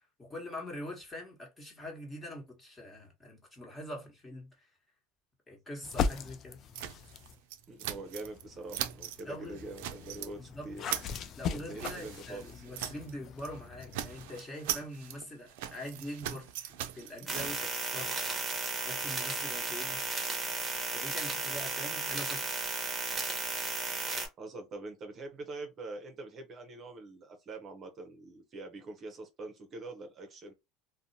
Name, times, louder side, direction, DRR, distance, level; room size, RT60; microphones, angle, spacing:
voice 1, 0.2-4.7 5.5-6.6 9.2-9.6 10.2-10.7 11.3-18.4 18.8-20.0 20.9-22.6, left 1 dB, 15° left, 1.3 m, -44 dB
sound 1, 5.8-7.4 8.1-14.3, left 6 dB, 45° left, 0.3 m, -39 dB
sound 2, 6.7-8.4 8.7-9.2 9.6-10.3 10.6-13.1 13.4-13.6 13.8-17.8, right 12 dB, 75° right, 0.4 m, -40 dB
voice 2, 7.7-10.8 11.5-12.7 24.4-30.5, right 2 dB, 40° right, 0.7 m, -44 dB
sound 3, 17.3-24.3, right 3 dB, 20° right, 1.0 m, -34 dB
2.5 x 2.1 x 2.7 m
supercardioid pair, 105°, 0 cm